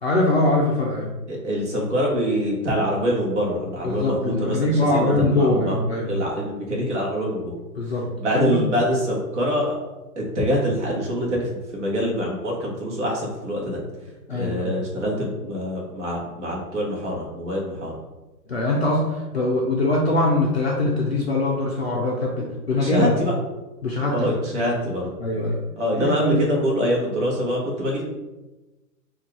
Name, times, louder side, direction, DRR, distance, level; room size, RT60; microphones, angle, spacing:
voice 1, 0.0-1.1 3.8-6.1 7.7-8.1 8.3-8.6 14.3-14.8 18.5-23.2 23.8-24.3 25.2-25.6 26.0-26.6, left 2 dB, 40° left, -4 dB, 0.6 m, -22 dB
voice 2, 1.3-5.8 6.1-7.5 8.2-9.8 10.2-13.8 14.3-17.9 22.4-23.3 24.1-25.1 25.8-28.0, equal, 45° right, -3 dB, 1.4 m, -25 dB
4.1 x 2.5 x 4.6 m, 1.1 s
hypercardioid pair, 175°, 49 cm